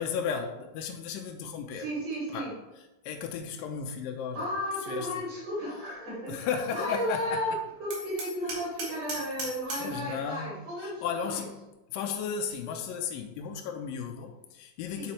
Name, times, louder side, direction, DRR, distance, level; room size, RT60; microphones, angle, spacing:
voice 1, 0.0-1.9 2.3-2.5 3.0-4.5 4.9-5.1 6.3-7.4 9.8-11.6 11.9-15.1, left 6 dB, 85° left, 4 dB, 2.4 m, -34 dB
voice 2, 1.7-2.5 4.3-11.4 14.9-15.1, equal, 50° right, -8 dB, 4.0 m, -34 dB
Hammer, 7.9-10.0, right 2 dB, 85° right, 3.4 m, -37 dB
7.5 x 6.9 x 3.2 m, 0.99 s
omnidirectional pair, 4.0 m